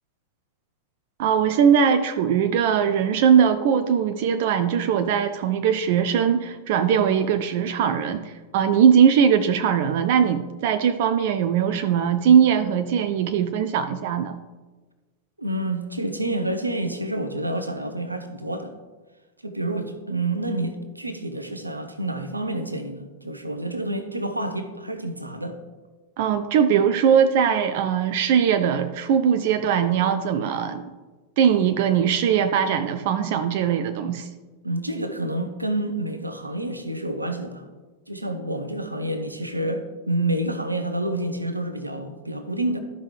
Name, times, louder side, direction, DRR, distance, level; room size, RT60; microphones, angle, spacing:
voice 1, 1.2-14.4 26.2-30.8 31.4-34.3, right 8 dB, 50° right, 9 dB, 0.4 m, -20 dB
voice 2, 15.4-18.7 19.4-25.6 34.6-37.6 38.1-42.8, right 1 dB, 85° right, 8 dB, 0.8 m, -28 dB
12.5 x 5.3 x 3.2 m, 1.3 s
figure-of-eight pair, 90°, 0 cm